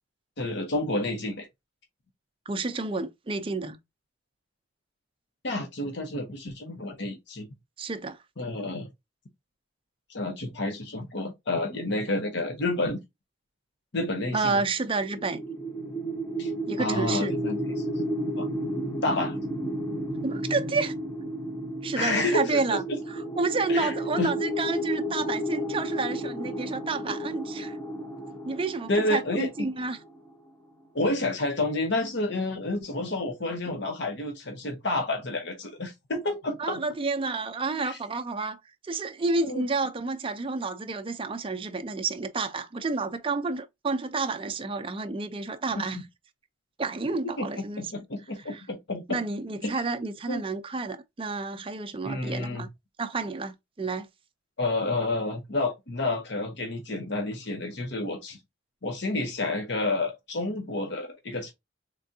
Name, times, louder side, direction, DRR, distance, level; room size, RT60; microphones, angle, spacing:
voice 1, 0.4-1.5 5.4-7.5 8.4-8.9 10.1-13.0 13.9-14.6 16.4-18.0 18.4-18.5 19.0-19.4 22.0-23.0 23.7-24.3 28.9-29.5 30.9-36.8 37.8-38.0 39.4-39.7 45.8-46.0 47.4-47.5 47.8-49.2 49.6-49.7 50.3-50.4 52.0-52.7 54.6-58.4 58.8-61.5, left 2 dB, 65° left, 0.9 m, -30 dB
voice 2, 2.5-3.8 7.8-8.2 14.3-15.4 16.7-17.4 20.2-20.9 21.8-22.8 23.1-27.8 28.5-30.0 36.6-46.1 46.8-48.0 48.5-48.6 49.1-52.7 53.0-54.1, right 3 dB, 30° right, 0.5 m, -30 dB
sound 1, 15.0-30.0, right 1 dB, 15° left, 0.7 m, -32 dB
3.7 x 3.3 x 2.7 m
head